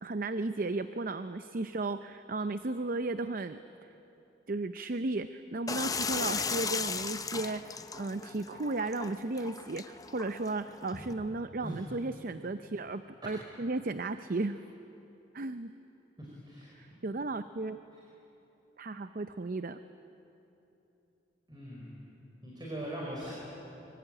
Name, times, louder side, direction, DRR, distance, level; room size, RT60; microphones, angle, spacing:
voice 1, 0.0-3.9 4.5-14.6 15.3-15.7 16.8-17.8 18.8-19.8, right 2 dB, 50° right, 11 dB, 0.6 m, -35 dB
sound 1, 5.7-11.1, left 5 dB, 20° left, 0.7 m, -36 dB
voice 2, 16.2-16.8 21.5-22.1 22.4-23.3, right 1 dB, 25° right, -4 dB, 4.8 m, -41 dB
24.5 x 24.0 x 9.0 m, 3.0 s
head